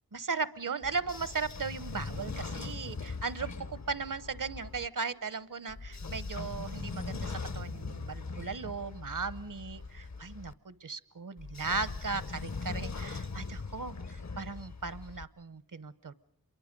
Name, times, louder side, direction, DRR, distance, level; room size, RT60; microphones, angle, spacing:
voice 1, 0.1-16.1, right 4 dB, 65° right, 17 dB, 0.9 m, -37 dB
Train / Sliding door, 0.8-4.9 5.7-10.5 11.4-15.3, left 4 dB, 50° left, 0.8 m, -40 dB
sound 1, 2.3-9.7, left 2 dB, 75° left, 2.4 m, -69 dB
27.0 x 23.0 x 5.2 m, 0.74 s
wide cardioid pair, 60°, 35 cm